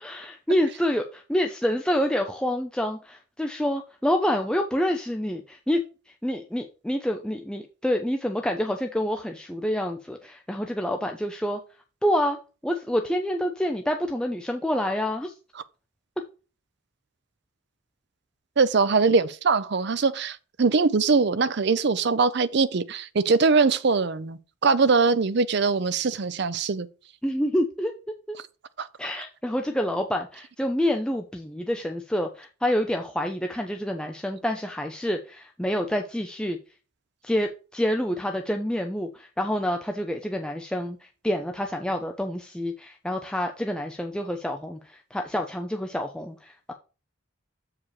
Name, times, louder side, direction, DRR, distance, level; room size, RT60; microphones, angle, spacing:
voice 1, 0.0-5.8 6.2-11.6 12.0-12.4 12.6-15.3 27.2-27.9 28.3-28.4 29.0-36.6 37.2-41.0 41.2-46.7, equal, 5° left, 0.5 m, -27 dB
voice 2, 18.6-26.9 28.8-28.9, right 4 dB, 55° right, 0.5 m, -22 dB
7.1 x 4.9 x 4.7 m
head